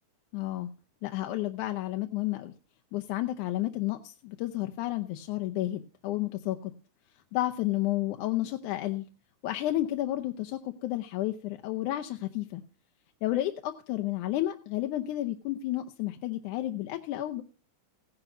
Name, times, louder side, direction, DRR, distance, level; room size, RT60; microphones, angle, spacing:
voice 1, 0.3-0.7 1.0-2.5 2.9-6.7 7.3-9.1 9.4-12.6 13.2-17.4, left 15 dB, 80° left, 6 dB, 2.1 m, -31 dB
16.5 x 10.5 x 2.5 m, 0.34 s
omnidirectional pair, 3.5 m